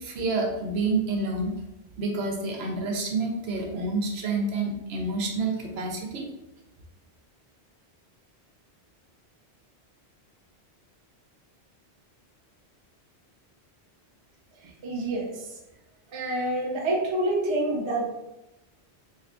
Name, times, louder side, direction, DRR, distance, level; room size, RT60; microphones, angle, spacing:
voice 1, 0.0-1.5 2.0-6.3, right 3 dB, 70° right, 0 dB, 0.9 m, -28 dB
voice 2, 14.8-15.3 16.1-18.0, right 1 dB, 35° right, -1 dB, 0.5 m, -27 dB
2.8 x 2.3 x 3.6 m, 0.95 s
omnidirectional pair, 1.1 m